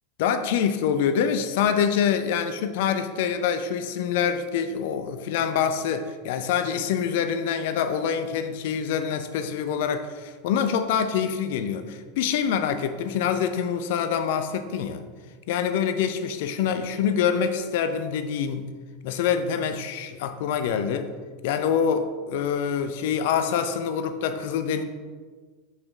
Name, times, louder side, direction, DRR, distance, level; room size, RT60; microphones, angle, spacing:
voice 1, 0.2-15.0 15.5-18.7 19.0-21.1 21.4-24.8, left 7 dB, 60° left, 9 dB, 0.5 m, -25 dB
5.2 x 5.0 x 4.6 m, 1.5 s
figure-of-eight pair, 85°, 0 cm